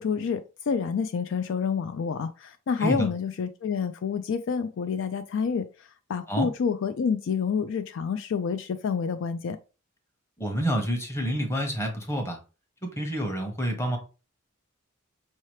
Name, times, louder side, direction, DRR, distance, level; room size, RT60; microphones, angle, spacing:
voice 1, 0.0-9.6, left 6 dB, 60° left, 0.4 m, -28 dB
voice 2, 10.4-12.4 13.0-14.0, equal, 15° left, 1.1 m, -28 dB
5.6 x 2.9 x 3.1 m
head